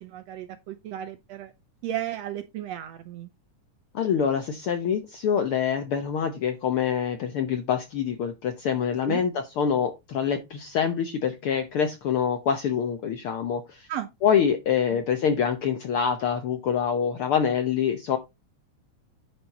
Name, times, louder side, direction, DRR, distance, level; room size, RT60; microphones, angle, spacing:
voice 1, 0.0-1.5 1.8-3.3 9.0-9.2 13.9-14.1, right 11 dB, 75° right, 1.6 m, -34 dB
voice 2, 3.9-13.9 14.2-18.2, left 7 dB, 70° left, 1.3 m, -25 dB
10.0 x 5.2 x 4.0 m
omnidirectional pair, 3.5 m